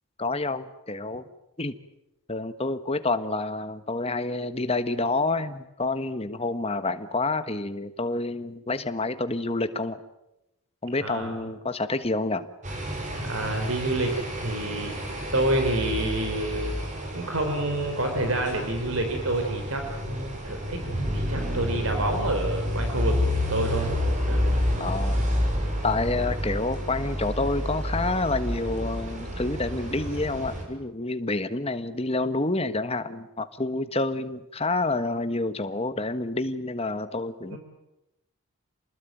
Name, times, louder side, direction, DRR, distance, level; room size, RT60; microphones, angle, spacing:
voice 1, 0.2-1.2 1.6-1.8 2.3-10.0 10.8-12.5 24.8-25.3 25.8-37.6, left 2 dB, 25° left, 10 dB, 1.4 m, -28 dB
voice 2, 11.0-11.3 13.2-14.1 14.4-14.9 15.3-16.8 17.1-20.8 21.1-23.9 24.3-24.6 37.5-37.6, right 1 dB, 65° right, 4 dB, 4.1 m, -28 dB
sound 1, 12.6-30.6, equal, 35° right, 6.0 m, -29 dB
28.5 x 20.5 x 9.2 m, 0.91 s
head